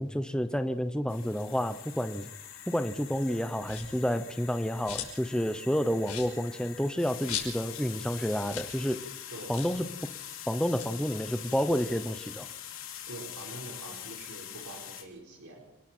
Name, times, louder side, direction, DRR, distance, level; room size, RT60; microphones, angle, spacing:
voice 1, 0.0-2.3 2.7-9.0 9.5-9.9 10.5-12.5, equal, 5° left, 10 dB, 0.8 m, -30 dB
sound 1, 1.1-15.0, left 10 dB, 60° left, 3.3 m, -44 dB
sound 2, 3.6-4.1 4.5-5.3 5.6-5.7 6.0-7.9 8.1-8.2 8.4-8.8 9.0-9.1 9.5-9.8 10.6-12.3 12.7-14.2, left 9 dB, 90° left, 5.7 m, -41 dB
voice 2, 13.1-15.6, right 2 dB, 90° right, 0 dB, 4.6 m, -45 dB
29.5 x 20.0 x 4.5 m, 0.88 s
head